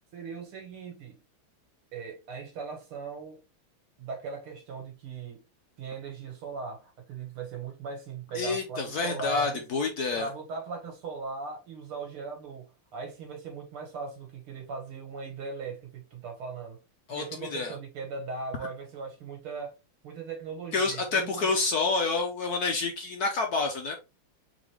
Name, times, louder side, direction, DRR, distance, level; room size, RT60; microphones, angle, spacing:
voice 1, 0.1-1.2 1.9-3.4 4.0-5.5 5.8-9.6 10.2-16.8 17.1-19.7 20.0-21.5, right 5 dB, 80° right, 2.3 m, -39 dB
voice 2, 8.3-10.3 17.1-17.7 20.7-24.0, left 4 dB, 60° left, 1.1 m, -28 dB
3.9 x 3.9 x 3.2 m
omnidirectional pair, 2.3 m